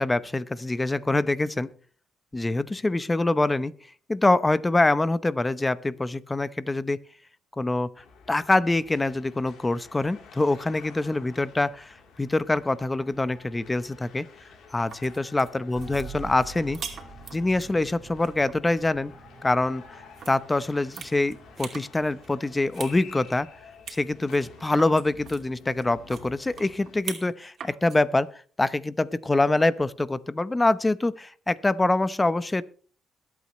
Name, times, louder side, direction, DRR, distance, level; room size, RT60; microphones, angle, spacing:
voice 1, 0.0-1.7 2.3-3.7 4.1-7.0 7.5-14.2 14.7-16.8 17.3-19.1 19.4-23.5 23.9-32.6, left 2 dB, 15° left, 16 dB, 0.8 m, -25 dB
sound 1, 8.0-27.0, left 5 dB, 70° left, 3.2 m, -50 dB
Slicing a Melon on a Plate Diced, 14.7-17.7 18.1-18.6 20.1-20.3 20.7-21.9 22.2-23.0 23.2-23.3 23.9-24.0 24.3-27.3 27.6-28.0 29.3-29.7, right 7 dB, 60° right, 2.6 m, -41 dB
sound 2, 15.7-23.3 24.0-24.1, right 5 dB, 40° right, 3.2 m, -47 dB
22.0 x 8.5 x 3.1 m, 0.42 s
cardioid pair, 90°, 0 cm